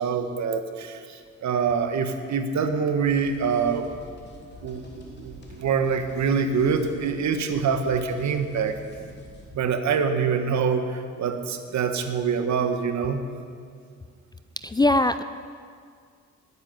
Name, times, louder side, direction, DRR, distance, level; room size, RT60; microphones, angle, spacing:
voice 1, 0.0-3.9 4.6-8.8 9.5-13.2, right 6 dB, 65° right, 7 dB, 1.3 m, -25 dB
sound 1, 3.0-9.5, left 1 dB, 35° left, 2.8 m, -47 dB
voice 2, 14.6-15.2, left 2 dB, 15° left, 11 dB, 0.4 m, -20 dB
9.8 x 9.5 x 9.4 m, 2.2 s
cardioid pair, 90°, 30 cm